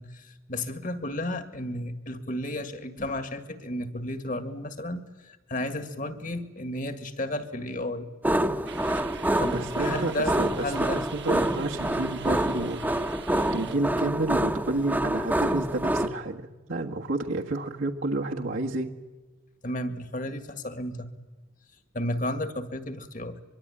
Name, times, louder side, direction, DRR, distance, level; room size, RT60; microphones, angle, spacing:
voice 1, 0.0-8.1 9.4-10.4 10.6-11.0 19.6-21.1 21.9-23.4, left 1 dB, 40° left, 10 dB, 1.9 m, -33 dB
sound 1, 8.2-16.1, right 1 dB, 10° right, 1.0 m, -27 dB
sound 2, 8.7-13.8, right 6 dB, 55° right, 1.1 m, -44 dB
voice 2, 9.5-12.8 13.5-18.9, right 2 dB, 75° right, -1 dB, 1.6 m, -30 dB
23.5 x 23.5 x 10.0 m, 1.2 s
head